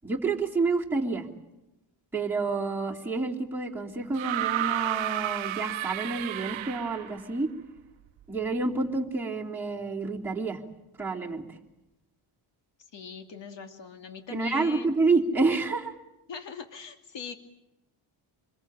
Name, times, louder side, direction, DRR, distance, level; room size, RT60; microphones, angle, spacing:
voice 1, 0.0-1.3 2.1-7.5 8.3-10.6 11.0-11.4 14.3-15.9, right 3 dB, 5° right, -4 dB, 3.0 m, -28 dB
sound 1, 4.1-7.2 8.4-8.5, right 14 dB, 70° right, 0.9 m, -31 dB
voice 2, 12.9-14.9 16.3-17.4, left 6 dB, 60° left, 6 dB, 2.8 m, -41 dB
26.5 x 22.0 x 8.8 m, 0.92 s
cardioid pair, 135°, 49 cm